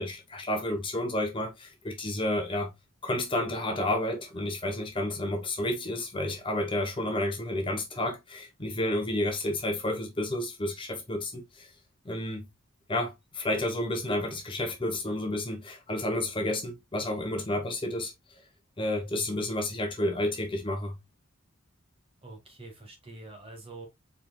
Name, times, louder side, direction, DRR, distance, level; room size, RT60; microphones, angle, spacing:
voice 1, 0.0-2.7 3.0-11.7 12.0-12.5 12.9-18.1 18.8-21.0, left 1 dB, 25° left, 1.0 m, -31 dB
voice 2, 19.0-19.3 22.2-23.9, right 2 dB, 30° right, 1.9 m, -46 dB
4.9 x 4.5 x 2.3 m
head